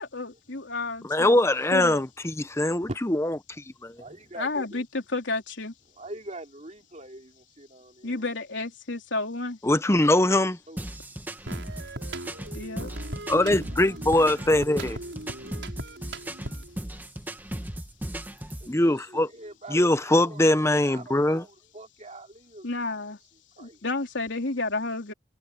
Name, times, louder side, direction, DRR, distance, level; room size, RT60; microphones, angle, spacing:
voice 1, 0.0-1.4 1.7-2.0 4.4-5.7 8.0-9.6 12.5-12.9 22.6-23.2 23.6-25.1, left 3 dB, 85° left, 3.6 m, -31 dB
voice 2, 1.1-2.9 3.2-3.3 3.8-3.9 9.6-10.6 13.3-15.0 18.7-19.3 19.7-21.4, left 1 dB, 15° left, 0.8 m, -22 dB
voice 3, 2.5-3.0 3.6-4.8 5.9-8.2 10.7-10.8 13.5-15.0 18.6-20.4 20.8-23.0 23.6-23.8, right 2 dB, 40° right, 3.2 m, -44 dB
sound 1, 10.8-18.7, right 1 dB, 10° right, 1.3 m, -37 dB
sound 2, 11.5-16.8, right 1 dB, 80° right, 6.0 m, -38 dB
head